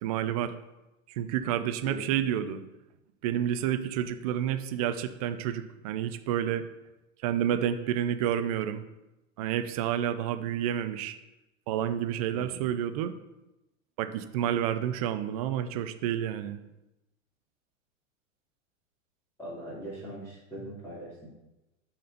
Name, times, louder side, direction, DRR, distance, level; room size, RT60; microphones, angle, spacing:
voice 1, 0.0-0.6 1.1-2.6 3.2-6.7 7.2-8.9 9.4-11.2 11.7-13.1 14.0-16.6, right 10 dB, 30° right, 10 dB, 0.4 m, -29 dB
voice 2, 12.3-12.7 19.4-21.3, equal, 5° left, -9 dB, 2.6 m, -41 dB
6.4 x 4.3 x 5.2 m, 0.96 s
hypercardioid pair, 145°, 39 cm